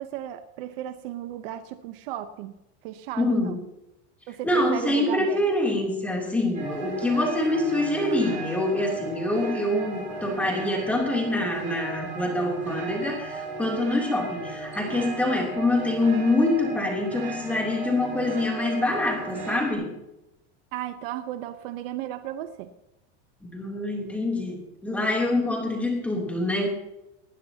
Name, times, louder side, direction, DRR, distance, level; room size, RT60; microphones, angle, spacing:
voice 1, 0.0-2.5 2.8-3.5 4.3-5.7 20.7-22.7, right 12 dB, 55° right, 9 dB, 1.0 m, -35 dB
voice 2, 3.2-3.6 4.4-19.9 23.5-26.7, left 2 dB, 5° left, -1 dB, 3.1 m, -25 dB
sound 1, 6.5-19.7, right 4 dB, 20° right, 6.2 m, -35 dB
20.0 x 15.5 x 2.9 m, 0.91 s
supercardioid pair, 175°, 35 cm